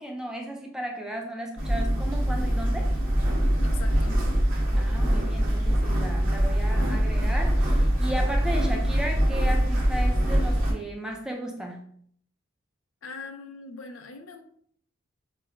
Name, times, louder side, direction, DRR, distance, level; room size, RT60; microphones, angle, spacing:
voice 1, 0.0-2.9 4.8-11.8, right 1 dB, 5° right, 0 dB, 0.4 m, -35 dB
sound 1, 1.6-10.7, equal, 45° right, 1.0 m, -23 dB
voice 2, 3.6-4.3 13.0-14.4, left 4 dB, 80° left, 6 dB, 0.5 m, -41 dB
5.5 x 2.1 x 2.5 m, 0.63 s
head